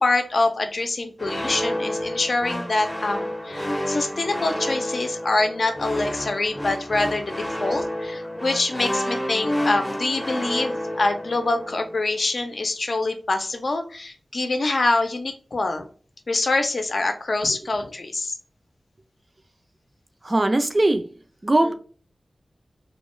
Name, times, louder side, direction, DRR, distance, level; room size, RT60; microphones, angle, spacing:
voice 1, 0.0-15.9 16.3-18.3 21.6-21.7, left 2 dB, 70° left, 0.5 m, -25 dB
sound 1, 1.2-12.1, equal, 10° left, 0.5 m, -29 dB
voice 2, 20.2-21.1 21.4-21.7, right 2 dB, 40° right, 0.4 m, -20 dB
2.3 x 2.1 x 3.0 m
cardioid pair, 50°, 0 cm